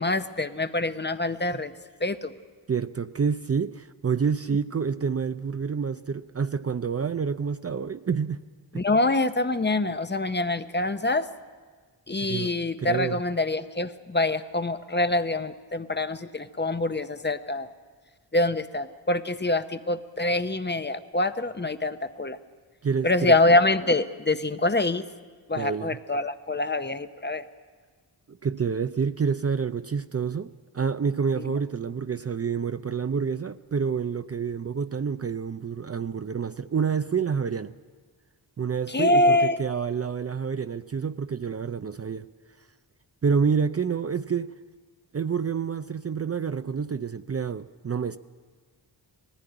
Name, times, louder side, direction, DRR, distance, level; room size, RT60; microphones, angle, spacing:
voice 1, 0.0-1.7 2.0-2.3 8.7-11.3 12.1-17.7 18.3-22.4 23.0-25.0 25.5-27.4 31.4-31.5 38.9-39.6, left 2 dB, 25° left, 0.8 m, -25 dB
voice 2, 2.7-8.4 8.7-8.8 12.2-12.5 12.8-13.2 22.8-23.3 25.6-26.0 28.3-37.7 38.6-42.3 43.2-44.5 45.1-48.2, right 6 dB, 35° right, 0.5 m, -28 dB
19.0 x 14.5 x 9.9 m
wide cardioid pair, 70°, 43 cm